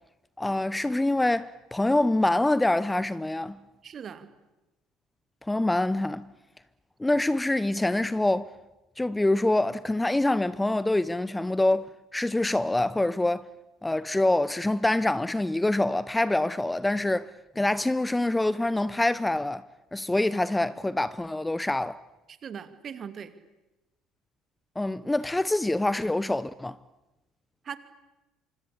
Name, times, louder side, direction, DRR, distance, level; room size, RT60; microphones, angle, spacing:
voice 1, 0.4-3.6 5.4-6.3 7.0-8.5 9.0-11.9 12.1-13.5 13.8-19.7 19.9-22.0 24.8-26.8, left 2 dB, 10° left, 0.9 m, -25 dB
voice 2, 3.8-4.3 22.3-23.3 27.6-27.8, right 7 dB, 45° right, 2.8 m, -39 dB
26.0 x 25.5 x 8.7 m
hypercardioid pair, 60°, 0 cm